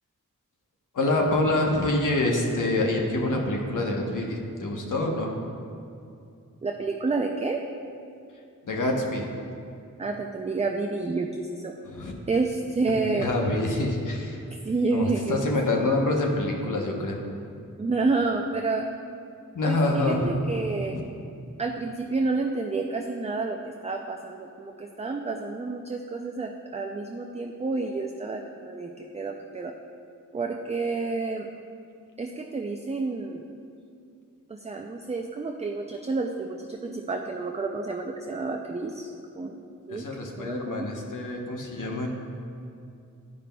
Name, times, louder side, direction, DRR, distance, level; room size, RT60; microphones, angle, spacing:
voice 1, 0.9-5.3 8.6-9.3 11.9-12.1 13.1-14.4 14.9-17.2 19.5-20.2 20.9-21.0 39.9-42.1, left 2 dB, 65° left, 1 dB, 0.9 m, -26 dB
voice 2, 6.6-7.6 10.0-11.7 12.3-13.3 14.6-15.5 17.8-18.9 19.6-21.0 21.6-29.7 30.3-31.5 32.2-33.4 34.5-40.1 40.3-40.9, right 3 dB, 20° right, 2 dB, 0.3 m, -29 dB
11.0 x 5.0 x 2.2 m, 2.5 s
wide cardioid pair, 60°, 33 cm